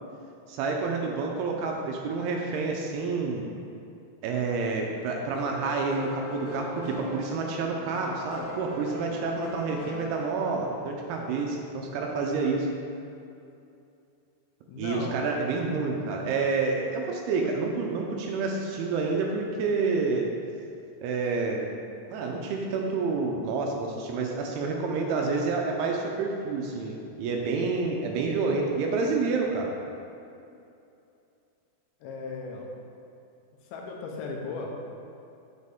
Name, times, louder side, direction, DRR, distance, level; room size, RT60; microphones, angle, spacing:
voice 1, 0.5-3.5 4.2-12.7 14.8-20.3 21.0-21.7 22.1-29.7, right 4 dB, 85° right, 0 dB, 2.3 m, -28 dB
sound 1, 5.3-11.2, left 1 dB, 70° left, 3.7 m, -41 dB
voice 2, 14.7-15.4 32.0-32.7 33.7-34.7, left 3 dB, 90° left, 0 dB, 3.2 m, -36 dB
7.1 x 6.6 x 3.5 m, 2.6 s
omnidirectional pair, 5.2 m